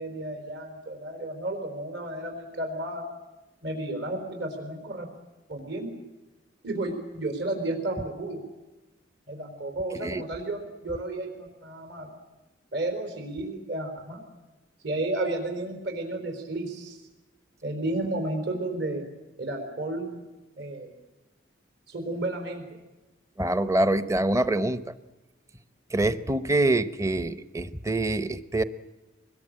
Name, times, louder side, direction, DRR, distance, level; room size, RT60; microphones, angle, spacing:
voice 1, 0.0-3.1 3.6-5.1 5.5-5.9 6.6-8.4 9.3-12.1 12.7-14.2 14.8-17.0 17.6-19.1 19.4-20.2 20.6-20.9 21.9-22.6, right 2 dB, 65° right, 3 dB, 4.4 m, -32 dB
voice 2, 23.4-24.9 25.9-28.6, right 2 dB, 15° right, 12 dB, 0.8 m, -25 dB
24.0 x 21.5 x 9.0 m, 1.1 s
head